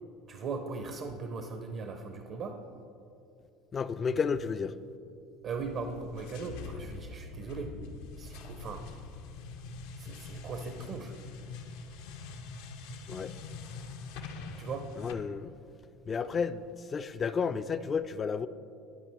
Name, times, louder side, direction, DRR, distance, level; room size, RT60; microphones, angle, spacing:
voice 1, 0.3-2.6 5.4-7.7 8.2-8.9 10.0-11.1 14.6-14.9, right 4 dB, 55° right, 0.6 m, -39 dB
voice 2, 3.7-4.7 13.1-13.3 15.0-15.5 16.1-18.5, left 5 dB, 35° left, 0.3 m, -32 dB
sound 1, 5.5-15.2, left 4 dB, 75° left, 0.6 m, -44 dB
11.5 x 5.1 x 3.4 m
supercardioid pair, 85°, 0 cm